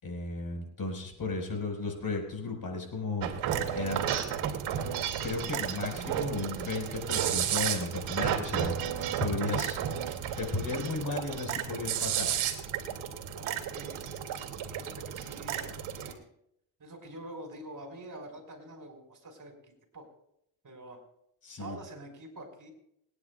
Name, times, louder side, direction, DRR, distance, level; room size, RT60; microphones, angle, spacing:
voice 1, 0.0-3.3 3.7-4.0 5.2-8.7 9.2-9.8 10.4-12.3 21.4-21.8, left 3 dB, 45° left, 3 dB, 4.6 m, -34 dB
sound 1, 3.2-16.1, right 9 dB, 75° right, 2.3 m, -33 dB
voice 2, 13.4-14.0 14.8-16.2 16.8-20.1 20.6-21.0 21.6-22.7, right 1 dB, 40° right, 3 dB, 4.3 m, -46 dB
28.5 x 9.9 x 2.3 m, 0.73 s
supercardioid pair, 70°, 48 cm